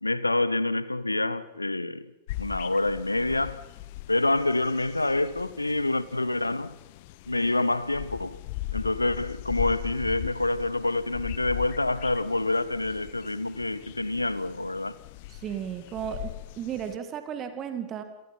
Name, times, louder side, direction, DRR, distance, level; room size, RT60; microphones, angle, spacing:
voice 1, 0.0-2.1 2.4-3.6 4.1-6.8 7.3-8.4 8.7-15.0, left 2 dB, 85° left, 0.8 m, -27 dB
sound 1, 2.3-17.0, left 17 dB, 50° left, 0.7 m, -40 dB
voice 2, 15.3-18.0, right 8 dB, 30° right, 2.1 m, -34 dB
28.5 x 18.0 x 5.7 m
figure-of-eight pair, 90°, 0 cm